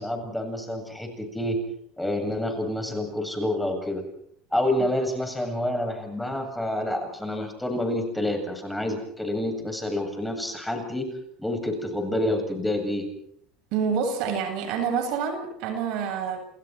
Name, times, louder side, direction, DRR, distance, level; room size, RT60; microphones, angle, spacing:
voice 1, 0.0-1.6 2.0-4.0 4.5-11.1 11.4-13.1, left 1 dB, 5° left, 4 dB, 8.0 m, -28 dB
voice 2, 13.7-16.4, right 6 dB, 60° right, 5 dB, 8.0 m, -27 dB
30.0 x 28.0 x 4.7 m, 0.69 s
hypercardioid pair, 85°, 0 cm